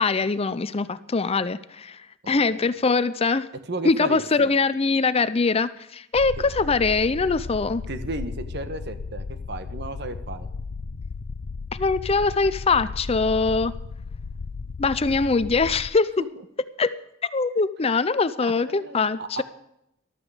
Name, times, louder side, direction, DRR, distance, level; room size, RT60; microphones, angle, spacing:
voice 1, 0.0-2.0 2.3-3.5 3.8-7.8 11.7-13.7 14.8-16.1 16.8-16.9 17.2-19.4, left 4 dB, 30° left, 15 dB, 0.5 m, -22 dB
voice 2, 2.2-2.7 3.7-4.5 7.9-10.5 18.4-19.4, right 2 dB, 60° right, 10 dB, 1.4 m, -34 dB
sound 1, 6.1-15.9, left 4 dB, 80° left, 0.5 m, -35 dB
14.5 x 12.5 x 5.0 m, 0.80 s
head